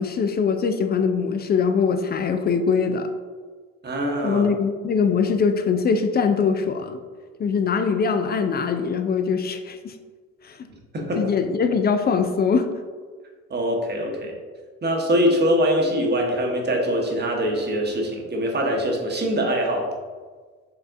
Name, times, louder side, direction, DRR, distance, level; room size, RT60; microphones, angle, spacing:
voice 1, 0.0-3.1 4.2-7.0 7.4-9.9 10.4-10.6 11.2-12.7, left 5 dB, 30° left, 8 dB, 0.4 m, -22 dB
voice 2, 3.8-4.4 10.9-11.2 13.5-14.3 14.8-19.9, equal, 30° right, 0 dB, 1.0 m, -23 dB
4.6 x 3.4 x 2.5 m, 1.5 s
hypercardioid pair, 65°, 34 cm